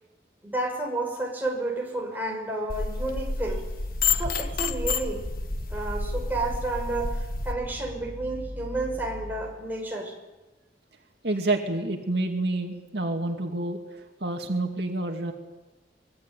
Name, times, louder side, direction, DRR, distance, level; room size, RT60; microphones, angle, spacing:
voice 1, 0.4-3.7 4.1-5.3 5.7-10.1, right 2 dB, 10° right, 0 dB, 5.7 m, -31 dB
sound 1, 2.7-7.5, left 4 dB, 55° left, 1.3 m, -29 dB
sound 2, 3.8-9.6, equal, 40° right, 6.4 m, -41 dB
voice 2, 11.2-15.3, right 2 dB, 65° right, 2 dB, 2.3 m, -28 dB
25.0 x 21.0 x 9.1 m, 1.1 s
head